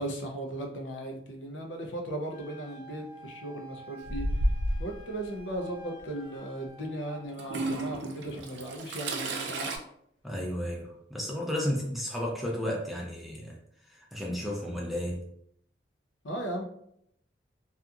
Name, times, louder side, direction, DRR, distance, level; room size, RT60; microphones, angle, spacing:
voice 1, 0.0-4.3 4.8-9.7 16.2-16.6, right 1 dB, 80° left, 2 dB, 0.6 m, -37 dB
Wind instrument woodwind instrument, 2.3-7.3, right 2 dB, 15° left, 0.8 m, -50 dB
Toilet flush / Trickle dribble, 4.0-4.9 6.0-6.1 7.4-9.8, right 1 dB, 70° right, 0.4 m, -31 dB
voice 2, 10.2-13.6 13.9-15.3, left 1 dB, ahead, -2 dB, 0.4 m, -33 dB
2.8 x 2.4 x 2.3 m, 0.70 s
head